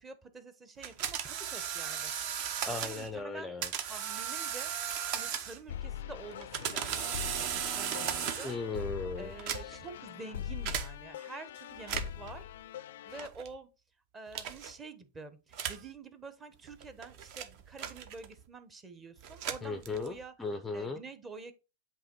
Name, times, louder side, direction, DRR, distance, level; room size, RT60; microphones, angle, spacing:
voice 1, 0.0-2.1 2.8-3.5 3.9-4.7 5.1-8.5 9.2-12.5 13.0-13.7 14.1-20.3 20.7-21.5, right 3 dB, 15° right, 0.9 m, -48 dB
sound 1, 0.8-3.1 3.6-5.7 6.3-8.7 9.3-9.9 10.7-10.9 11.8-12.3 13.2-13.5 14.3-14.7 15.5-15.9 16.7-18.4 19.2-20.2, right 8 dB, 50° right, 0.8 m, -36 dB
voice 2, 2.7-3.7 8.4-9.8 19.6-21.0, left 3 dB, 10° left, 0.5 m, -37 dB
sound 2, 5.7-13.3, left 10 dB, 75° left, 0.4 m, -42 dB
7.8 x 3.0 x 4.4 m
supercardioid pair, 145°, 0 cm